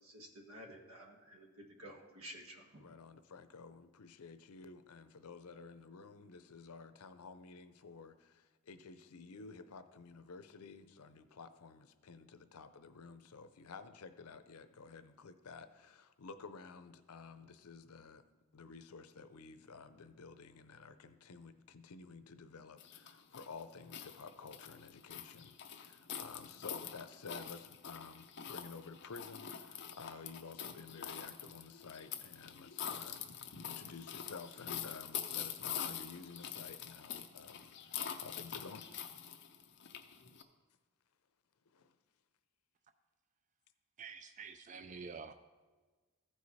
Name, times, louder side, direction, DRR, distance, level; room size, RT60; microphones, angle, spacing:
voice 1, 0.0-2.9, equal, 75° right, 2 dB, 1.4 m, -53 dB
voice 2, 2.8-18.2 18.5-38.9 41.7-42.0, left 4 dB, 90° left, 10 dB, 0.6 m, -52 dB
sound 1, 22.8-40.4, left 9 dB, 50° left, 0.6 m, -45 dB
voice 3, 44.0-45.3, right 5 dB, 35° right, 9 dB, 0.3 m, -48 dB
14.5 x 4.9 x 4.2 m, 1.3 s
head